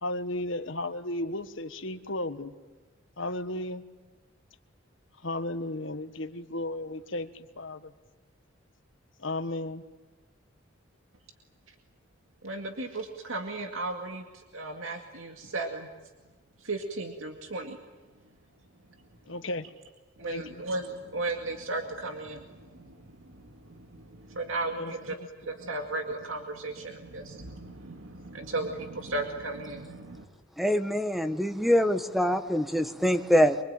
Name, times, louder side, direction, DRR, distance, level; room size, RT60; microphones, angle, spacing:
voice 1, 0.0-2.5 3.2-3.8 5.2-7.9 9.2-9.8 19.3-19.7 20.2-20.6 24.7-25.5, left 1 dB, 70° left, 9 dB, 1.5 m, -34 dB
voice 2, 12.4-15.9 16.6-17.8 20.2-30.3, right 2 dB, 90° right, 4 dB, 2.2 m, -35 dB
voice 3, 30.6-33.6, equal, ahead, 9 dB, 1.4 m, -24 dB
25.0 x 24.5 x 9.0 m, 1.2 s
head